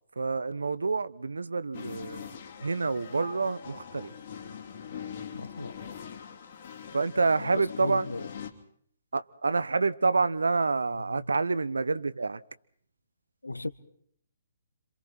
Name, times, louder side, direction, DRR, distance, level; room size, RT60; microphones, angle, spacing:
voice 1, 0.2-2.4 2.6-4.1 6.9-8.1 9.1-12.4, right 4 dB, 75° right, 1.0 m, -28 dB
sound 1, 1.7-8.5, left 8 dB, 45° left, 3.1 m, -42 dB
voice 2, 5.3-5.7 7.8-8.2 13.4-13.7, left 2 dB, 85° left, 1.4 m, -35 dB
28.0 x 26.5 x 4.5 m
figure-of-eight pair, 130°, 0 cm